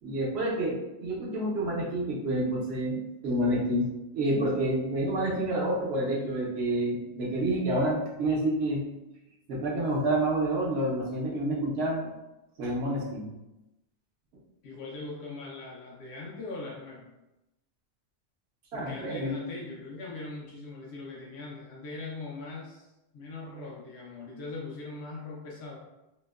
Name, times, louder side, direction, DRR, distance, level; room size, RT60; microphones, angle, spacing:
voice 1, 0.0-8.9 9.5-12.1 12.6-13.3 18.7-19.4, right 1 dB, 70° right, -3 dB, 0.9 m, -28 dB
voice 2, 14.6-17.1 18.7-22.9 23.1-25.8, left 3 dB, 75° left, -4 dB, 0.8 m, -40 dB
2.8 x 2.0 x 2.2 m, 0.96 s
omnidirectional pair, 1.1 m